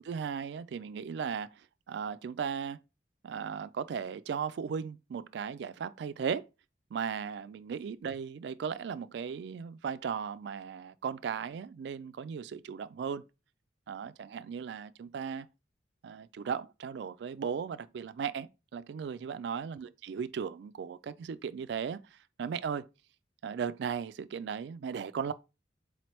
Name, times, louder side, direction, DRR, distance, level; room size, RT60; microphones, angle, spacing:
voice 1, 0.0-2.8 3.2-6.5 6.9-13.2 13.9-15.5 16.0-22.9 23.4-25.3, right 6 dB, 70° right, 0.3 m, -37 dB
4.1 x 3.1 x 2.9 m
head